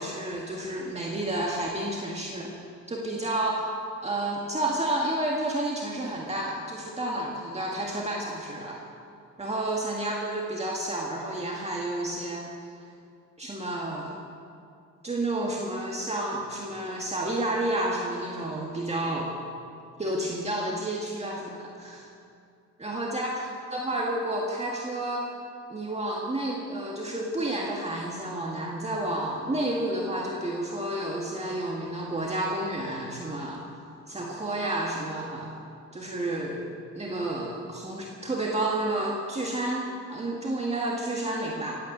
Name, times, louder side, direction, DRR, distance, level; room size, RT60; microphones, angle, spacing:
voice 1, 0.0-2.5 2.9-3.7 4.0-8.8 9.4-12.5 13.4-14.2 15.0-19.3 20.0-22.1 22.8-23.4 23.7-25.3 25.7-33.6 34.1-35.5 35.9-36.7 36.9-41.8, right 1 dB, 20° right, -2 dB, 2.0 m, -30 dB
16.5 x 9.3 x 8.1 m, 2.5 s
cardioid pair, 90°, 30 cm